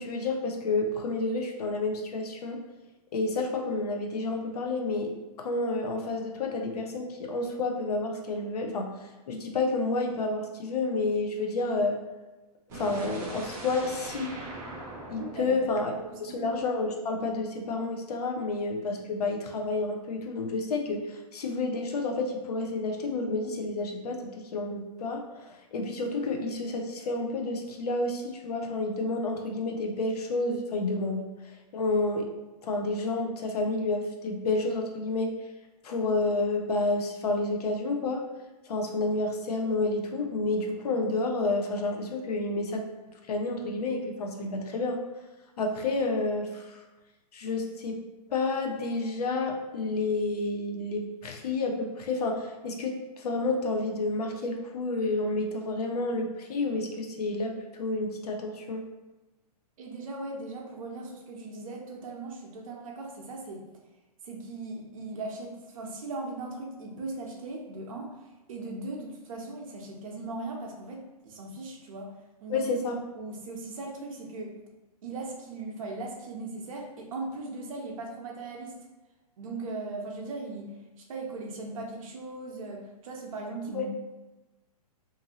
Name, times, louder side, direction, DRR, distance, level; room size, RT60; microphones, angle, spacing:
voice 1, 0.0-2.6 3.1-5.1 5.4-12.0 12.7-14.3 15.1-15.9 16.2-24.2 24.5-25.2 25.7-32.3 32.6-35.3 35.8-38.2 38.7-42.8 43.3-45.0 45.6-46.8 47.3-48.0 48.3-58.8 72.5-73.0 83.7-83.9, left 3 dB, 70° left, 2 dB, 0.6 m, -30 dB
sound 1, 12.7-16.7, right 1 dB, 15° right, 0.4 m, -41 dB
voice 2, 15.2-15.8 16.1-16.5 59.8-63.6 64.2-68.1 68.5-72.1 72.4-72.7 73.1-74.5 75.0-78.8 79.4-80.7 81.0-83.9, right 2 dB, 55° right, 0 dB, 0.7 m, -38 dB
2.7 x 2.5 x 2.8 m, 1.1 s
hypercardioid pair, 155°, 20 cm